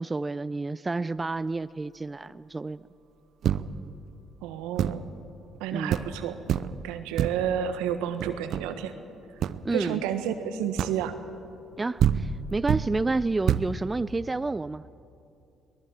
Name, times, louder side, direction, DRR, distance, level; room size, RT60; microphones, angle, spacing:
voice 1, 0.0-2.8 5.7-6.1 9.6-10.0 11.8-14.8, right 3 dB, 25° right, 15 dB, 0.5 m, -30 dB
sound 1, 3.4-3.9 4.8-5.1 5.6-5.7 5.9-6.2 6.5-6.9 7.2-7.5 8.2-8.8 9.4-9.6 10.8-11.1 11.7-11.8 12.0-13.0 13.5-13.8, right 9 dB, 65° right, 0.7 m, -27 dB
voice 2, 4.4-5.0 5.6-6.4 6.8-8.9 9.7-11.1, right 9 dB, 85° right, 8 dB, 1.5 m, -30 dB
22.5 x 20.0 x 7.5 m, 2.6 s
supercardioid pair, 60°, 0 cm